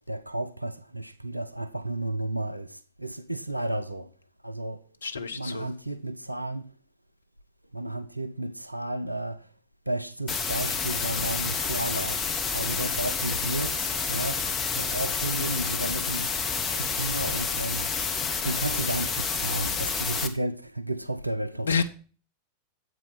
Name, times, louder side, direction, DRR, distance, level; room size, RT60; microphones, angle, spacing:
voice 1, 0.1-4.1 4.4-4.8 5.3-6.7 7.7-9.5 9.9-12.2 12.5-16.3 16.7-18.0 18.4-21.8, right 1 dB, 90° right, 0.5 m, -32 dB
voice 2, 5.0-5.7 21.6-21.8, left 5 dB, 75° left, 0.7 m, -28 dB
sound 1, 10.3-20.3, left 5 dB, 25° left, 0.9 m, -29 dB
8.2 x 5.1 x 5.5 m
figure-of-eight pair, 90°, 0 cm